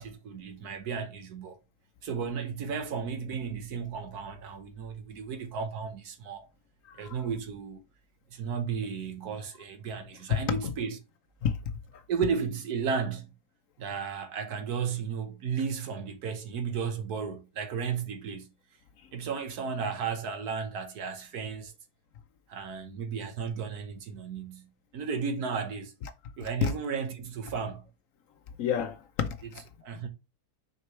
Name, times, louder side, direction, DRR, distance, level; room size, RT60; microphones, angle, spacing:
voice 1, 0.0-1.6 2.0-6.5 7.0-7.8 8.3-11.0 12.1-13.3 13.8-18.5 19.1-21.7 22.5-25.9 26.4-27.9 29.8-30.1, right 6 dB, 75° right, 1.5 m, -34 dB
voice 2, 6.9-7.2 10.3-10.7 11.4-11.6 11.9-12.0 26.6-26.7 28.6-29.6 30.0-30.1, left 7 dB, 65° left, 0.9 m, -30 dB
6.4 x 5.0 x 3.2 m
omnidirectional pair, 1.7 m